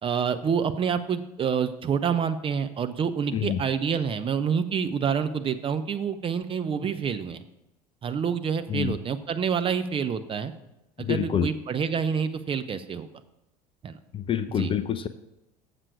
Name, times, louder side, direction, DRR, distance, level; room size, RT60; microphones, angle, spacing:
voice 1, 0.0-7.4 8.0-10.5 11.0-13.1 13.8-14.0 14.6-14.7, right 7 dB, 25° right, 11 dB, 0.5 m, -27 dB
voice 2, 11.0-11.5 14.1-15.1, left 8 dB, 25° left, 11 dB, 0.4 m, -27 dB
7.4 x 6.6 x 4.7 m, 0.90 s
figure-of-eight pair, 65°, 20 cm